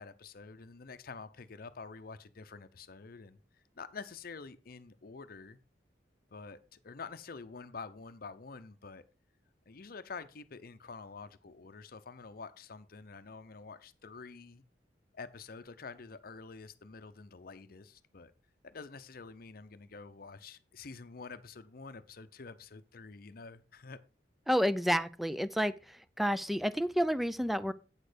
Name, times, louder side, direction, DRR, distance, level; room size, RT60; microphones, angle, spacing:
voice 1, 0.0-3.4 3.7-5.6 6.3-9.0 9.7-14.6 15.1-18.3 18.6-24.0, left 4 dB, 55° left, 0.7 m, -48 dB
voice 2, 24.5-27.7, equal, ahead, 0.4 m, -30 dB
8.8 x 6.5 x 5.0 m
head